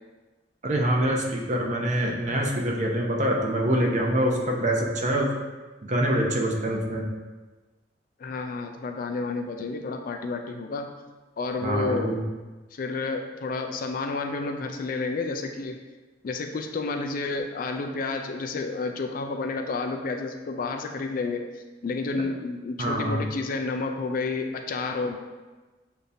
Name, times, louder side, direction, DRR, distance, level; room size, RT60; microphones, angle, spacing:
voice 1, 0.6-5.3 5.9-7.0 11.6-12.2 22.8-23.2, right 1 dB, 40° right, 0 dB, 0.6 m, -25 dB
voice 2, 8.2-10.9 11.4-12.2 12.7-15.8 16.2-21.5 21.8-25.2, left 3 dB, 50° left, 5 dB, 0.3 m, -30 dB
6.6 x 2.7 x 2.6 m, 1.2 s
head